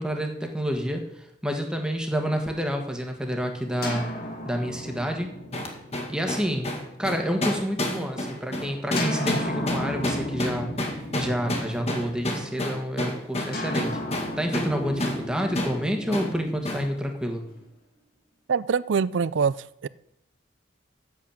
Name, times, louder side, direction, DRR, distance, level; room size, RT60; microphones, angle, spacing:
voice 1, 0.0-4.1 4.4-5.3 6.1-6.7 7.0-14.0 14.4-17.5, equal, 5° right, 3 dB, 1.5 m, -29 dB
sound 1, 3.8-7.6 9.0-12.5 13.5-17.7, left 1 dB, 50° left, 2.4 m, -34 dB
sound 2, 5.5-14.8 15.0-15.2 15.6-15.8 16.1-16.3 16.7-16.9, left 1 dB, 35° left, 1.8 m, -29 dB
voice 2, 18.5-19.5 19.8-19.9, right 6 dB, 70° right, 20 dB, 0.4 m, -23 dB
8.3 x 7.3 x 8.6 m, 0.78 s
head